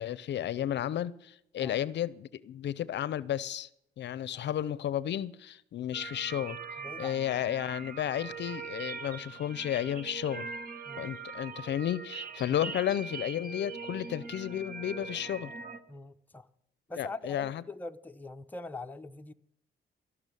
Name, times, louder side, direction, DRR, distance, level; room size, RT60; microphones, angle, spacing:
voice 1, 0.0-3.7 4.0-6.6 7.0-10.5 11.0-15.5 17.0-17.6, left 11 dB, 65° left, 0.6 m, -33 dB
sound 1, 5.9-15.8, right 5 dB, 45° right, 1.3 m, -42 dB
voice 2, 6.8-7.3 10.9-11.1 15.9-16.5 16.9-19.3, left 2 dB, 10° left, 0.8 m, -43 dB
15.0 x 6.1 x 9.1 m
cardioid pair, 90°, 20 cm